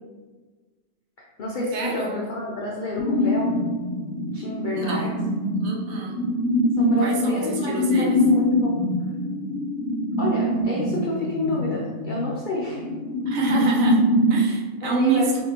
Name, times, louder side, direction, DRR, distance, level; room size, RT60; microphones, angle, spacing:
voice 1, 1.2-3.6 4.3-5.2 6.8-8.8 10.2-12.9 13.5-13.6 14.8-15.3, left 2 dB, 80° left, -4 dB, 0.4 m, -29 dB
voice 2, 1.7-2.1 4.7-5.1 5.6-6.2 7.0-8.2 13.3-14.0 14.3-15.2, right 4 dB, 70° right, -1 dB, 1.1 m, -26 dB
sound 1, 3.0-14.4, equal, 65° left, 0.9 m, -24 dB
4.2 x 2.6 x 2.8 m, 1.4 s
omnidirectional pair, 1.5 m